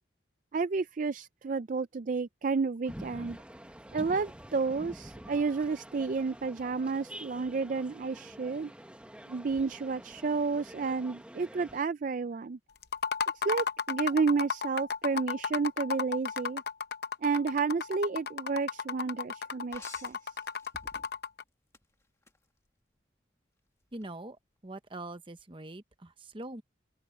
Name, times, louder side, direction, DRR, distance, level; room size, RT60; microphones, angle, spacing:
voice 1, 0.5-3.4 3.9-8.7 9.3-12.6 13.4-16.6 17.2-20.2, right 4 dB, 45° right, 0.4 m, -31 dB
sound 1, 2.9-11.8, equal, 5° right, 1.4 m, -47 dB
sound 2, 12.8-21.4, left 6 dB, 55° left, 0.8 m, -34 dB
sound 3, 19.7-21.3 21.7-22.4 23.9-24.1, left 2 dB, 15° left, 1.7 m, -51 dB
voice 2, 23.9-24.4 24.6-26.6, right 2 dB, 25° right, 1.0 m, -43 dB
open air
head